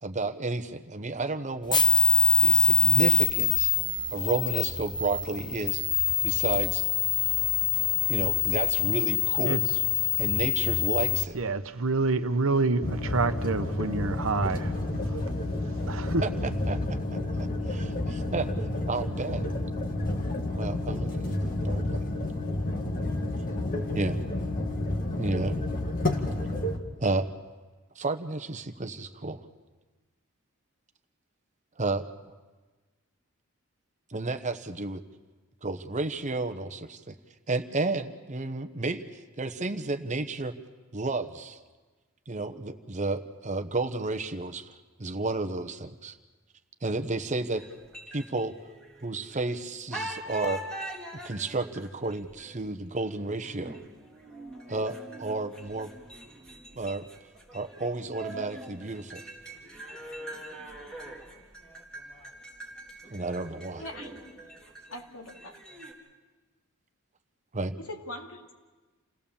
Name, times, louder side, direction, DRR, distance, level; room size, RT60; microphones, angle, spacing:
voice 1, 0.0-1.8 2.4-3.7 4.1-5.8 6.2-6.9 8.1-9.6 10.2-11.4 16.2-16.3 16.7-16.8 17.1-18.5 18.9-19.4 20.5-22.0 23.9-24.2 25.2-25.6 27.0-27.3 28.0-29.4 31.8-32.0 34.1-35.0 35.6-37.1 37.5-39.0 39.4-40.5 40.9-41.6 42.3-44.7 45.0-46.2 46.8-47.6 48.1-48.5 49.0-50.6 51.2-53.8 54.7-55.9 56.7-57.0 57.5-59.2 63.1-63.8 67.5-67.8, right 3 dB, 35° right, 8 dB, 1.0 m, -32 dB
sound 1, 1.7-11.2, left 5 dB, 20° left, 1.0 m, -24 dB
voice 2, 11.3-15.2 15.9-16.2, right 3 dB, 65° right, 9 dB, 1.0 m, -27 dB
sound 2, 12.8-26.8, left 1 dB, 40° left, 2.1 m, -30 dB
sound 3, 47.6-49.5 49.9-65.9, right 1 dB, 5° left, 3.7 m, -43 dB
voice 3, 63.8-64.4 64.9-65.6 67.8-68.5, left 1 dB, 70° left, 2 dB, 2.4 m, -42 dB
29.0 x 17.5 x 7.2 m, 1.3 s
head